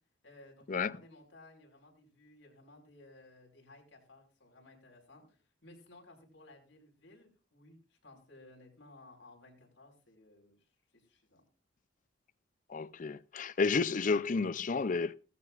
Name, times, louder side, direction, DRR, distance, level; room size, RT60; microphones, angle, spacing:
voice 1, 0.2-10.6 10.9-11.4, left 2 dB, 80° left, 5.3 m, -58 dB
voice 2, 12.7-15.1, left 4 dB, 45° left, 0.5 m, -31 dB
17.0 x 15.5 x 2.5 m
head